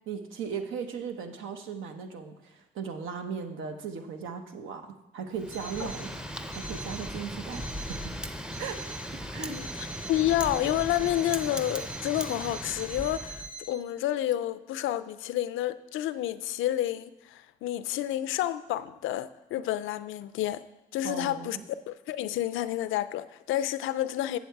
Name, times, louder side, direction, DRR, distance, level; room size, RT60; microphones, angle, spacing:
voice 1, 0.1-6.2 6.5-8.1 8.6-9.6 21.0-21.6, right 6 dB, 80° right, 1.0 m, -37 dB
Wind, 5.4-13.5, equal, 5° right, 0.5 m, -38 dB
Alarm, 5.5-6.1 6.5-7.1 7.5-8.1 8.5-9.1 9.5-13.7, right 3 dB, 50° right, 2.5 m, -43 dB
voice 2, 9.5-20.7 20.9-21.6 21.9-24.4, left 13 dB, 85° left, 0.4 m, -30 dB
8.1 x 7.1 x 4.6 m
cardioid pair, 90°, 20 cm